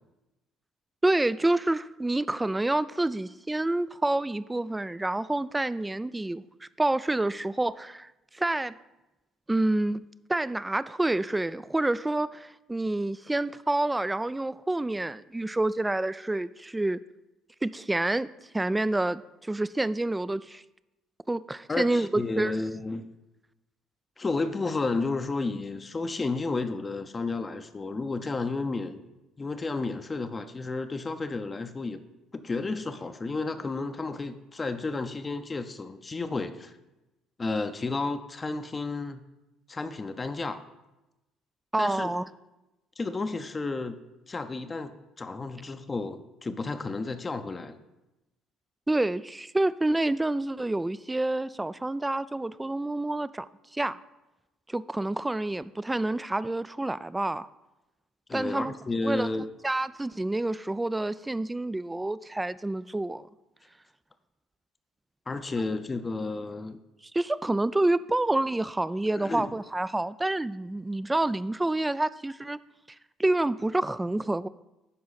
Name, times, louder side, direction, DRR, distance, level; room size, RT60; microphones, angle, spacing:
voice 1, 1.0-8.7 9.5-10.0 10.3-17.0 17.6-18.3 18.5-20.6 21.3-22.6 41.7-42.3 48.9-53.5 53.7-54.0 54.7-57.5 58.3-58.7 59.0-59.3 59.6-63.3 67.1-72.6 73.2-74.5, right 2 dB, 15° right, 17 dB, 0.3 m, -28 dB
voice 2, 21.7-23.1 24.2-29.0 29.4-32.0 32.3-36.7 37.4-39.2 39.7-40.6 41.8-42.1 43.0-44.0 44.3-44.9 45.2-47.8 58.3-59.5 65.3-66.8 69.2-69.5, left 3 dB, 30° left, 8 dB, 0.6 m, -32 dB
11.0 x 4.7 x 4.1 m, 0.98 s
hypercardioid pair, 65°, 0 cm